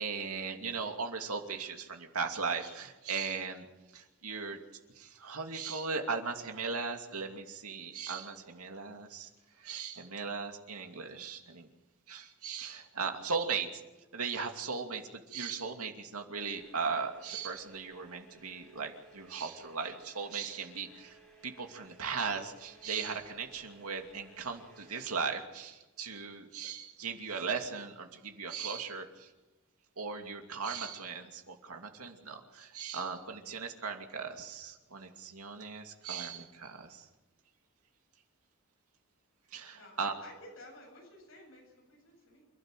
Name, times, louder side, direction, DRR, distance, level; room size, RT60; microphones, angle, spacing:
voice 1, 0.0-3.7 3.9-4.6 4.9-9.3 9.6-11.7 12.1-13.7 14.1-21.2 21.4-29.3 30.0-37.1 39.5-40.1, right 5 dB, 90° right, 4 dB, 2.6 m, -38 dB
sound 1, 16.5-25.4, right 3 dB, 5° left, 6.3 m, -59 dB
voice 2, 39.7-42.4, left 1 dB, 65° left, 1 dB, 7.8 m, -53 dB
28.5 x 12.5 x 7.6 m, 1.1 s
head